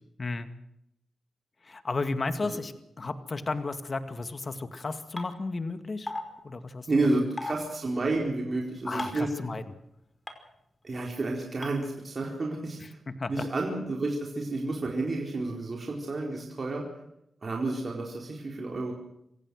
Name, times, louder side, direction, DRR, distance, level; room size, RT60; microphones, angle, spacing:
voice 1, 1.6-6.1 6.4-6.9 8.9-9.6 13.1-13.5, left 3 dB, 50° left, 9 dB, 2.0 m, -33 dB
sound 1, 5.2-5.3 6.1-6.2 7.4-7.5 9.0-9.2 10.3-10.4 11.6-11.7, left 2 dB, 25° left, 5.5 m, -33 dB
voice 2, 6.9-9.3 10.8-13.0 13.3-16.8 17.4-18.9, right 2 dB, 50° right, 0 dB, 4.6 m, -30 dB
27.5 x 15.5 x 6.5 m, 0.78 s
cardioid pair, 50°, 0 cm